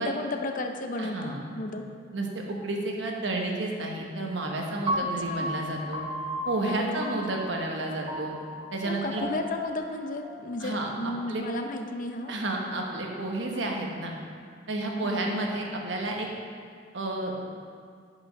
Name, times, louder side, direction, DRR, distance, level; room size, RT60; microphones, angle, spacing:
voice 1, 0.0-1.8 5.0-5.5 6.7-7.1 8.9-12.3 13.5-13.7 15.0-15.3, left 2 dB, 45° left, 5 dB, 0.6 m, -34 dB
voice 2, 1.0-1.4 2.1-6.0 6.4-8.4 8.7-9.2 10.6-10.9 11.3-11.4 12.3-14.1 14.7-16.3 16.9-17.3, right 2 dB, 70° right, 0 dB, 1.2 m, -31 dB
Piano, 4.9-11.0, equal, 25° right, 0.6 m, -35 dB
8.4 x 5.0 x 5.4 m, 2.1 s
head